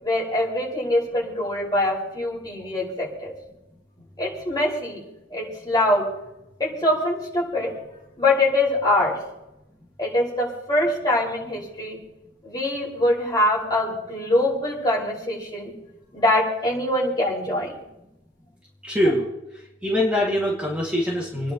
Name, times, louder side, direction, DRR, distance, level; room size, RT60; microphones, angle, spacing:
voice 1, 0.0-3.3 4.2-5.0 5.3-6.0 6.6-7.7 8.2-9.2 10.0-12.0 12.4-15.7 16.1-17.7, left 1 dB, 20° left, -5 dB, 5.6 m, -23 dB
voice 2, 18.8-19.2 19.8-21.5, left 1 dB, 5° right, -5 dB, 2.3 m, -23 dB
29.5 x 10.5 x 3.1 m, 0.92 s
head